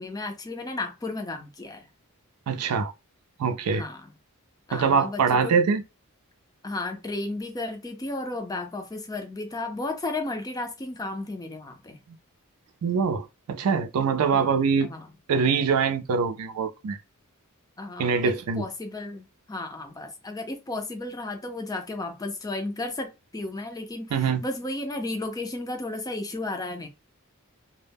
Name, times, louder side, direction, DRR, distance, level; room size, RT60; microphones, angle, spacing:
voice 1, 0.0-1.9 3.7-4.1 4.7-5.6 6.6-12.0 14.3-14.6 14.8-15.1 17.8-26.9, left 2 dB, 15° left, 0.4 m, -34 dB
voice 2, 2.5-2.9 3.4-3.8 4.7-5.8 12.8-14.9 15.3-17.0 18.0-18.6 24.1-24.4, right 5 dB, 85° right, 0.4 m, -24 dB
2.1 x 2.0 x 3.3 m
head